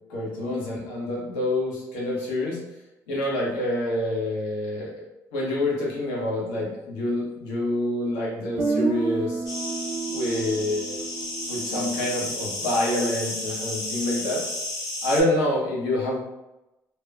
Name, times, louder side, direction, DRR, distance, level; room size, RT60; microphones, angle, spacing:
voice 1, 0.1-2.6 3.1-4.9 5.3-9.4 10.1-11.0 11.5-14.4 15.0-16.2, left 1 dB, 90° left, -5 dB, 0.7 m, -27 dB
Guitar, 8.6-12.5, right 4 dB, 75° right, 0.6 m, -30 dB
sound 1, 9.4-15.2, left 2 dB, 60° left, 1.0 m, -33 dB
2.8 x 2.0 x 2.3 m, 0.94 s
supercardioid pair, 70°, 8 cm